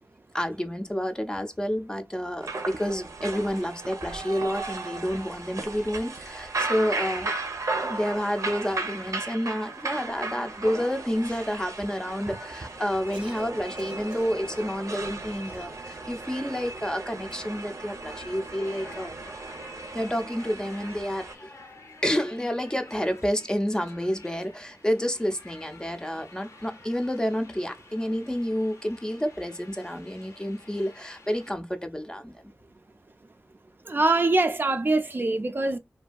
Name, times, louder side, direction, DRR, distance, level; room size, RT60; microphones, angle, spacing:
voice 1, 0.3-7.3 7.8-19.1 19.9-21.5 22.0-32.5, equal, 15° left, 0.5 m, -29 dB
sound 1, 2.4-21.3, right 3 dB, 90° right, 0.6 m, -35 dB
Cough, 13.1-13.5 13.8-14.8 15.5-16.1 17.3-17.6, right 1 dB, 20° right, 0.7 m, -47 dB
sound 2, 18.0-31.5, left 2 dB, 80° left, 0.8 m, -50 dB
voice 2, 33.9-35.8, right 2 dB, 40° right, 0.4 m, -23 dB
2.7 x 2.6 x 2.2 m
wide cardioid pair, 60°, 5 cm